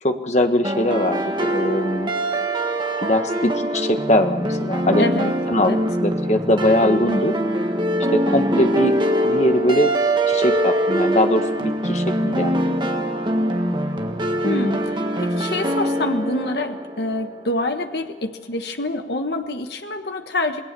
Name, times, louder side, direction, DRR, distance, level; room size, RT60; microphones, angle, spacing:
voice 1, 0.0-2.1 3.0-5.0 5.5-5.7 6.0-7.3 8.1-9.0 9.2-9.9 10.3-12.8, left 1 dB, 40° left, 6 dB, 1.6 m, -21 dB
sound 1, 0.6-17.5, right 1 dB, 25° right, 1.5 m, -23 dB
voice 2, 5.0-5.8 14.4-20.6, left 2 dB, 70° left, 6 dB, 1.4 m, -26 dB
27.5 x 19.0 x 7.0 m, 1.2 s
head